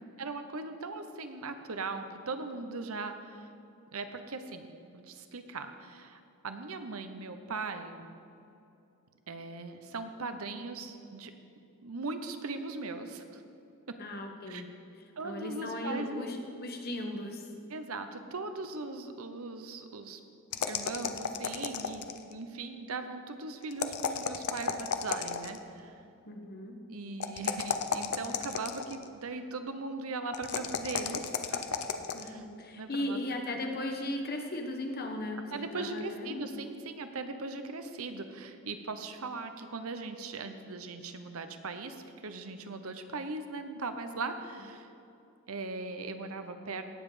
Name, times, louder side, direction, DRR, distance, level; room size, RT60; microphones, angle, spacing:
voice 1, 0.2-3.5 3.9-8.0 9.3-11.3 11.8-13.4 13.9-14.0 14.5-14.6 15.2-16.3 17.7-20.2 20.6-26.0 26.9-31.6 32.2-32.5 32.8-33.2 33.5-33.6 35.5-44.9 45.5-46.9, right 3 dB, 70° right, 8 dB, 0.9 m, -39 dB
voice 2, 14.0-14.7 15.2-17.4 26.3-26.8 32.1-36.4, left 1 dB, 45° left, 3 dB, 1.3 m, -37 dB
sound 1, 20.5-22.3 23.7-25.6 27.2-29.0 30.3-32.3, left 6 dB, 80° left, 0.7 m, -33 dB
17.5 x 7.4 x 5.0 m, 2.7 s
head